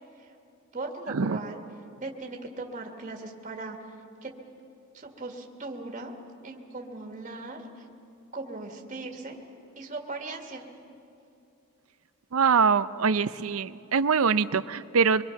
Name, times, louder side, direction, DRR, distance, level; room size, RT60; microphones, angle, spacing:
voice 1, 0.7-1.6 2.0-3.8 4.2-4.3 4.9-6.1 6.4-7.9 8.3-9.4 9.8-10.6, right 3 dB, 35° right, 2 dB, 1.9 m, -38 dB
voice 2, 12.3-15.2, right 5 dB, 75° right, 14 dB, 0.6 m, -23 dB
25.0 x 22.0 x 5.9 m, 2.7 s
head